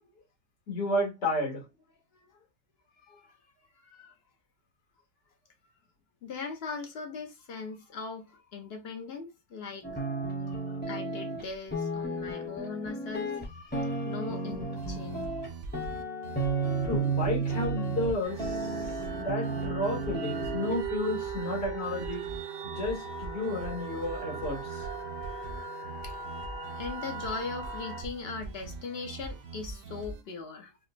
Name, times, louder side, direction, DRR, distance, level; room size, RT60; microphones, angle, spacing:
voice 1, 0.7-1.7 3.9-4.0 10.5-10.6 16.8-18.9 19.2-22.3 22.6-24.9, left 1 dB, 80° left, 2.4 m, -32 dB
voice 2, 6.2-10.0 10.9-15.5 26.0-26.2 26.8-30.7, left 4 dB, 50° left, 0.8 m, -40 dB
sound 1, 9.8-11.4 11.7-15.5 15.7-18.1 18.4-20.8, right 3 dB, 10° left, 0.7 m, -33 dB
sound 2, 14.8-30.2, right 4 dB, 70° right, 0.9 m, -43 dB
sound 3, 18.2-28.0, right 5 dB, 85° right, 1.6 m, -39 dB
4.9 x 2.1 x 2.5 m
omnidirectional pair, 1.8 m